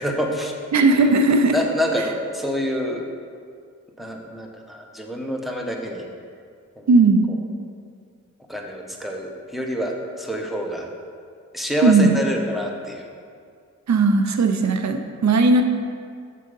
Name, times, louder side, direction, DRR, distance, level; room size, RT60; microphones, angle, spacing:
voice 1, 0.0-0.6 0.9-1.1 1.5-3.1 4.0-6.0 6.8-6.9 8.5-10.9 11.5-13.1, equal, ahead, 1 dB, 1.0 m, -27 dB
voice 2, 0.7-1.6 6.9-7.3 11.8-12.2 13.9-15.6, right 3 dB, 60° right, 6 dB, 0.6 m, -17 dB
6.3 x 4.1 x 5.4 m, 2.2 s
cardioid pair, 50°, 31 cm